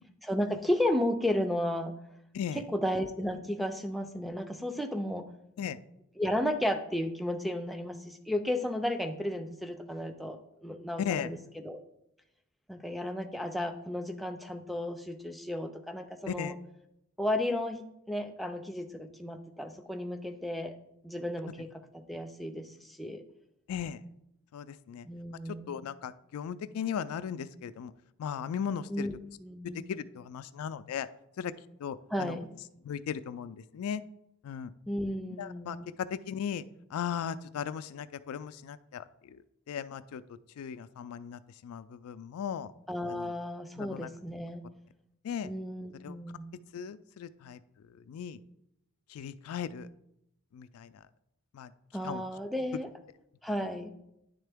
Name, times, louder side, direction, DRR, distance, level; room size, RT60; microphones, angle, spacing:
voice 1, 0.2-1.9 2.5-5.3 6.2-11.8 12.7-16.6 17.2-17.8 18.1-20.8 21.0-21.7 21.9-23.2 25.0-25.8 28.9-29.9 32.1-32.5 34.9-35.9 42.9-44.6 45.4-46.5 51.9-52.9 53.4-53.9, left 1 dB, ahead, 5 dB, 0.4 m, -33 dB
voice 2, 11.0-11.3 16.3-16.5 23.7-24.0 24.5-25.1 25.7-27.9 28.2-29.1 29.7-31.1 31.4-31.5 31.8-32.4 32.8-34.0 34.4-34.7 35.4-36.6 36.9-39.4 39.7-40.2 40.6-42.7 43.1-43.3 43.8-44.1 45.2-45.5 46.0-46.2 46.7-47.6 48.1-48.4 49.1-49.9 50.5-50.9 51.5-51.7 52.0-52.2, left 8 dB, 80° left, 14 dB, 0.3 m, -37 dB
10.0 x 3.6 x 3.4 m, 0.82 s
head